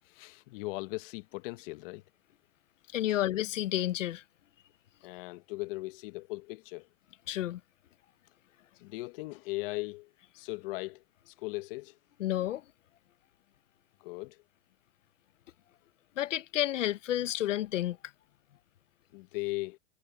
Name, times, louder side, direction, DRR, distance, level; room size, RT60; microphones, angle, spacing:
voice 1, 0.1-2.0 5.0-6.9 8.8-10.1 10.3-11.9 14.0-14.4 19.1-19.8, left 23 dB, 50° left, 1.2 m, -38 dB
voice 2, 2.9-4.2 7.3-7.6 12.2-12.7 16.1-18.1, left 13 dB, 85° left, 1.3 m, -31 dB
hypercardioid pair, 140°, 37 cm